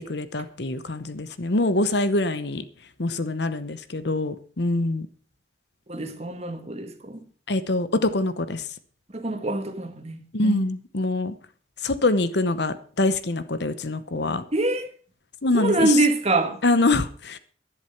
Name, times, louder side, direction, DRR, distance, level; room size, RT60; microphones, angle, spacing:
voice 1, 0.1-2.6 3.0-5.1 7.5-8.7 10.3-11.3 11.8-14.4 15.4-16.0 16.6-17.4, left 2 dB, 60° left, 0.9 m, -24 dB
voice 2, 5.9-7.2 9.1-10.7 14.5-14.9 15.5-16.6, right 2 dB, 35° right, 1.7 m, -25 dB
11.0 x 11.0 x 5.8 m
head